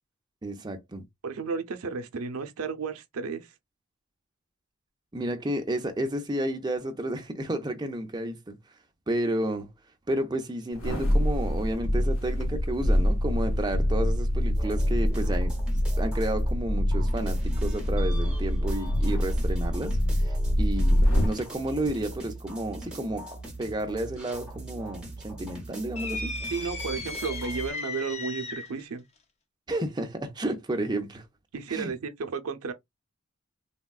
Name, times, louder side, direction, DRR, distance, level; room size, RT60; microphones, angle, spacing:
voice 1, 0.4-1.0 5.1-8.6 9.1-9.7 10.1-15.5 16.0-23.3 23.6-26.3 29.7-31.3 31.7-31.9, right 1 dB, 20° right, 0.5 m, -31 dB
voice 2, 1.2-3.5 26.5-29.0 31.5-32.7, right 5 dB, 90° right, 0.6 m, -33 dB
sound 1, 10.7-21.4 21.8-21.9, equal, 70° left, 1.1 m, -25 dB
sound 2, 14.5-16.6 16.9-27.7, right 2 dB, 5° right, 0.9 m, -40 dB
sound 3, 26.0-28.8, left 3 dB, 30° left, 0.4 m, -36 dB
3.4 x 2.2 x 2.3 m
head